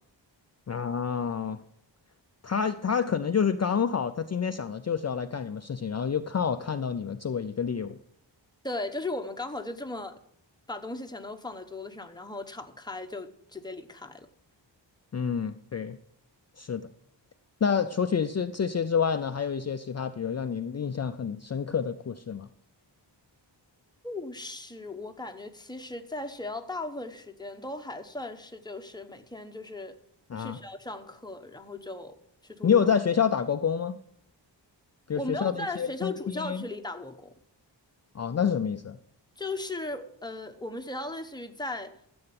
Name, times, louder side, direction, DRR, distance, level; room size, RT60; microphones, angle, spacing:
voice 1, 0.7-1.6 2.4-8.0 15.1-16.0 16.6-16.9 17.6-22.5 30.3-30.6 32.6-34.0 35.1-36.6 38.1-39.0, left 7 dB, 35° left, 0.5 m, -28 dB
voice 2, 8.6-10.1 10.7-14.3 24.0-30.0 30.4-32.2 32.4-32.8 35.1-37.4 39.4-41.9, left 2 dB, 10° left, 1.0 m, -37 dB
13.0 x 7.9 x 5.9 m
wide cardioid pair, 130°, 44 cm